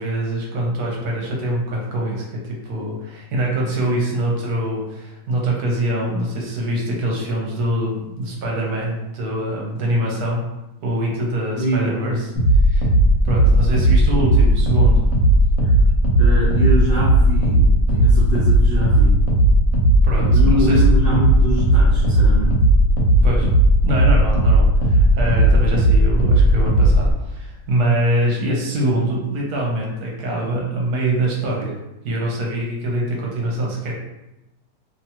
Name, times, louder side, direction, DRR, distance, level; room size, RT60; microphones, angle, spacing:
voice 1, 0.0-10.4 10.8-12.3 12.6-12.9 13.2-15.0 20.0-20.8 23.2-23.5 23.8-31.8 32.0-33.9, right 1 dB, 70° right, -2 dB, 1.1 m, -24 dB
voice 2, 11.6-12.2 15.6-15.7 16.2-19.2 20.1-22.6, equal, 60° left, -9 dB, 0.6 m, -24 dB
sound 1, 12.4-27.1, right 1 dB, 85° left, 1.3 m, -15 dB
2.9 x 2.2 x 2.8 m, 0.95 s
omnidirectional pair, 1.8 m